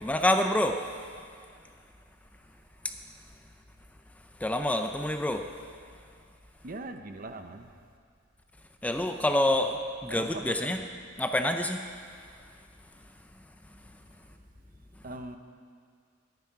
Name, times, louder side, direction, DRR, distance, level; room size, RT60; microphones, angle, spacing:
voice 1, 0.0-0.8 4.4-5.4 8.8-9.8 10.0-10.8 11.2-11.8, left 1 dB, 5° left, 5 dB, 0.4 m, -26 dB
voice 2, 6.6-7.7 10.1-10.8 15.0-15.4, right 2 dB, 45° right, 7 dB, 0.8 m, -41 dB
20.5 x 9.3 x 4.7 m, 2.2 s
head